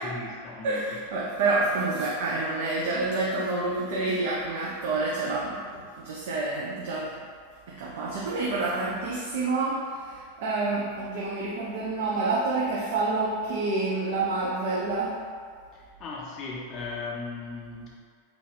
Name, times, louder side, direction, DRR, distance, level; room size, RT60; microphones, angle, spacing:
voice 1, 0.0-1.0 15.7-18.0, left 3 dB, 35° left, -4 dB, 0.5 m, -37 dB
voice 2, 0.6-7.1 7.8-15.1, right 3 dB, 55° right, -5 dB, 0.5 m, -28 dB
3.9 x 2.4 x 3.4 m, 2.1 s
figure-of-eight pair, 90°, 0 cm